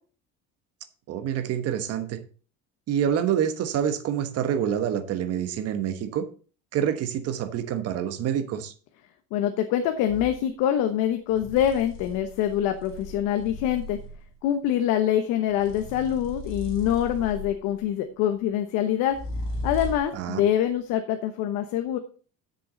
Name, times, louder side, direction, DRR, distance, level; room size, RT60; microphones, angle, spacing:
voice 1, 1.1-2.2 2.9-6.2 6.7-8.7 20.1-20.4, right 9 dB, 50° right, 9 dB, 1.2 m, -27 dB
voice 2, 9.3-14.0 14.4-19.2 19.6-22.0, left 10 dB, 80° left, 7 dB, 1.1 m, -25 dB
sound 1, 10.1-10.4 11.3-14.3 15.5-17.8 19.1-20.2, left 1 dB, 45° left, 3.9 m, -36 dB
11.5 x 6.9 x 4.0 m, 0.39 s
cardioid pair, 145°, 31 cm